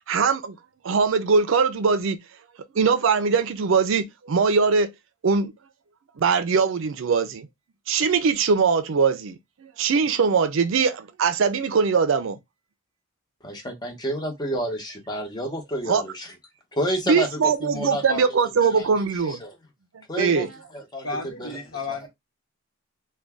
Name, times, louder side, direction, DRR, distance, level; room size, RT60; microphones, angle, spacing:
voice 1, 0.1-0.6 0.8-2.2 2.7-4.9 5.2-5.5 6.2-7.5 7.9-12.4 15.9-16.0 17.1-19.4 20.2-20.5, right 5 dB, 65° right, 0.4 m, -21 dB
voice 2, 13.4-16.3 16.7-18.2 18.6-19.5 20.1-20.5 20.7-21.1 21.4-21.6 21.9-22.0, equal, 20° left, 0.8 m, -30 dB
voice 3, 21.0-22.1, left 3 dB, 65° left, 1.0 m, -32 dB
2.5 x 2.2 x 3.3 m
head